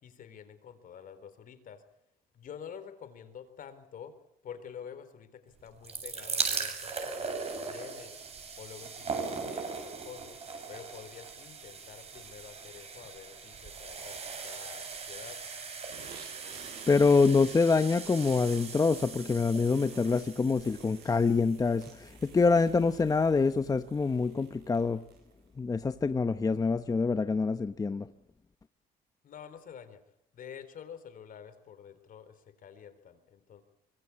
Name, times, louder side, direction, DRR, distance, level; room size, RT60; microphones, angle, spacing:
voice 1, 0.0-1.8 2.3-4.1 4.4-8.1 8.6-10.4 10.7-15.4 29.2-30.0 30.3-33.6, left 8 dB, 55° left, 3.9 m, -48 dB
sound 1, 5.6-22.6 23.4-23.5 23.7-23.8, right 5 dB, 40° right, 8.0 m, -39 dB
sound 2, 15.9-25.4, right 7 dB, 70° right, 7.9 m, -52 dB
voice 2, 16.9-25.0 25.6-28.1, left 4 dB, 20° left, 0.9 m, -26 dB
25.0 x 23.5 x 8.6 m
cardioid pair, 110°, 17 cm